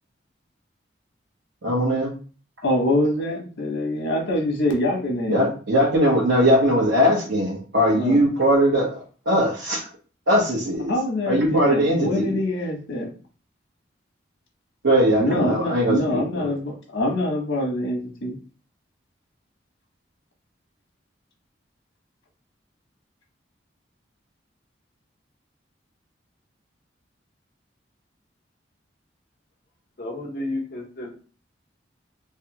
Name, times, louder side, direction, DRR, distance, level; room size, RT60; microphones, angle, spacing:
voice 1, 1.6-2.1 5.3-9.0 9.3-9.9 10.3-10.9 11.2-12.4 14.8-16.5, equal, 75° right, -5 dB, 1.0 m, -20 dB
voice 2, 2.6-5.5 7.9-8.2 10.9-13.1 15.2-18.3, left 1 dB, 90° left, 0 dB, 1.1 m, -24 dB
voice 3, 30.0-31.1, left 2 dB, 50° left, -2 dB, 0.9 m, -31 dB
3.3 x 2.3 x 2.9 m, 0.38 s
head